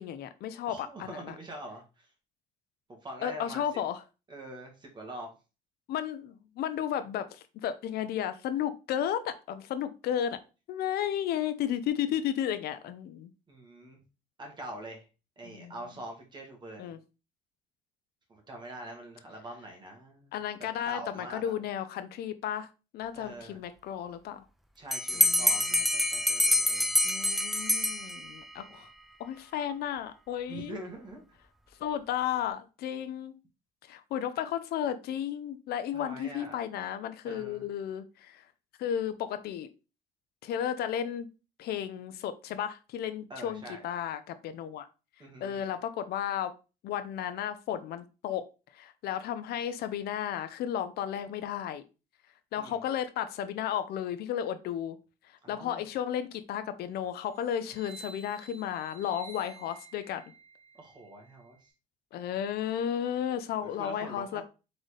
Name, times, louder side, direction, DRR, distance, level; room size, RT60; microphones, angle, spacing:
voice 1, 0.0-1.3 3.2-4.0 5.9-10.4 10.7-13.3 15.4-15.7 16.8-17.0 20.3-22.7 22.9-24.4 25.1-25.8 27.0-28.9 29.2-30.8 31.8-33.3 33.9-38.4 38.8-39.7 40.4-41.3 41.6-44.9 45.4-46.5 46.8-48.5 48.7-51.8 52.5-55.0 55.5-60.2 62.1-64.4, left 10 dB, 70° left, 0.6 m, -33 dB
voice 2, 0.7-2.1 2.9-3.7 4.3-5.3 13.5-14.0 14.4-15.0 15.4-16.9 18.3-20.3 20.8-21.5 23.1-23.6 24.8-26.9 28.6-28.8 30.5-31.2 35.9-36.6 37.2-37.7 43.3-43.8 45.2-45.7 52.6-52.8 55.4-55.9 60.7-61.7 63.6-64.4, right 1 dB, 25° right, 1.7 m, -44 dB
Bell, 24.9-28.5, left 1 dB, ahead, 0.4 m, -26 dB
sound 1, 57.5-61.6, right 5 dB, 55° right, 2.0 m, -52 dB
4.0 x 3.8 x 3.3 m
cardioid pair, 110°, 17 cm